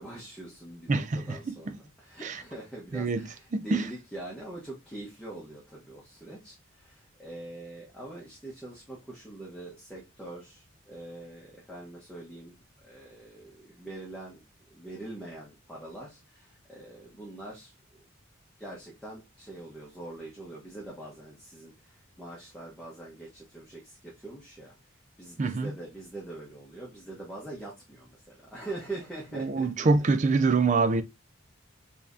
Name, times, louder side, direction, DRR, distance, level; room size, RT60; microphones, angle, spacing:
voice 1, 0.0-14.4 14.7-18.0 18.6-24.8 25.2-30.1, right 2 dB, 5° left, 1.0 m, -43 dB
voice 2, 0.9-1.8 2.2-2.3 2.9-3.2 3.5-3.8 25.4-25.7 29.3-31.0, right 3 dB, 35° right, 0.4 m, -25 dB
4.6 x 3.4 x 2.6 m
head